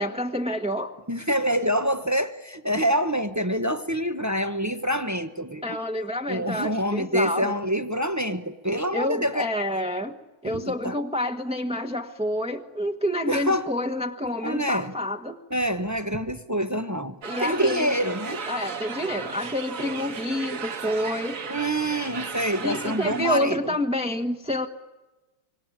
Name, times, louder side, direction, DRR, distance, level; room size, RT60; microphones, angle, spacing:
voice 1, 0.0-1.0 5.6-7.5 8.9-10.1 10.4-15.4 17.2-17.9 18.5-21.4 22.5-24.7, left 1 dB, 5° right, 5 dB, 0.8 m, -28 dB
voice 2, 1.1-5.6 6.3-9.5 10.4-10.9 13.3-13.7 14.4-14.9 15.5-18.4 21.4-23.6, equal, 25° right, 10 dB, 0.3 m, -26 dB
sound 1, 17.2-23.4, right 5 dB, 40° right, 1.6 m, -35 dB
26.0 x 25.0 x 9.2 m, 1.1 s
omnidirectional pair, 2.4 m